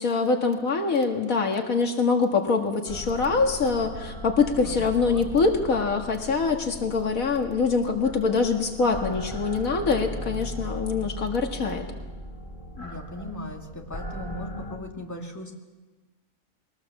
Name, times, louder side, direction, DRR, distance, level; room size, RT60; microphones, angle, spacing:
voice 1, 0.0-11.9, left 4 dB, 80° left, 4 dB, 2.2 m, -24 dB
sound 1, 2.9-14.8, equal, 35° left, 2.0 m, -38 dB
voice 2, 4.6-5.2 12.8-15.5, left 1 dB, 10° left, 1 dB, 2.2 m, -38 dB
22.0 x 18.5 x 7.2 m, 1.3 s
omnidirectional pair, 1.4 m